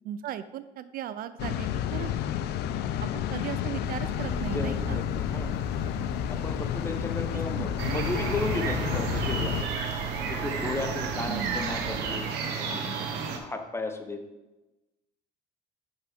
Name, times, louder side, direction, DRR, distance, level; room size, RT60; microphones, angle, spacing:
voice 1, 0.0-2.1 3.0-5.0 7.3-7.7 11.3-11.6, right 10 dB, 60° right, 13 dB, 0.4 m, -37 dB
sound 1, 1.4-9.6, left 10 dB, 75° left, 0.5 m, -31 dB
sound 2, 3.8-12.2, right 2 dB, 25° right, 0.8 m, -41 dB
voice 2, 4.3-5.6 6.3-9.8 10.2-12.2 12.5-14.2, left 2 dB, 15° left, 6 dB, 0.9 m, -35 dB
sound 3, 7.8-13.4, right 6 dB, 90° right, 0.9 m, -32 dB
5.8 x 5.4 x 5.1 m, 1.0 s
cardioid pair, 110°, 17 cm